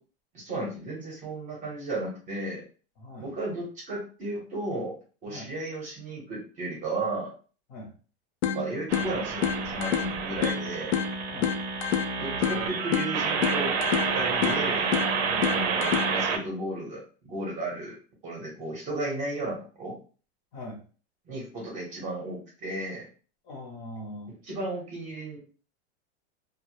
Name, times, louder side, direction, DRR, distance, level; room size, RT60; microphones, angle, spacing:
voice 1, 0.3-2.6 3.2-7.3 8.5-11.0 12.2-13.8 14.1-14.9 15.5-18.0 18.2-20.0 21.3-23.1 24.5-25.4, right 2 dB, 20° right, -2 dB, 0.8 m, -34 dB
voice 2, 3.0-3.3 5.3-5.5 7.7-7.9 11.3-11.5 15.3-15.5 20.5-20.8 23.4-24.3, left 1 dB, 40° left, 0 dB, 0.7 m, -41 dB
sound 1, 8.4-16.4, left 8 dB, 75° left, 0.5 m, -30 dB
sound 2, 8.9-16.4, right 5 dB, 70° right, 0.6 m, -29 dB
2.0 x 2.0 x 3.0 m, 0.38 s
supercardioid pair, 160°, 33 cm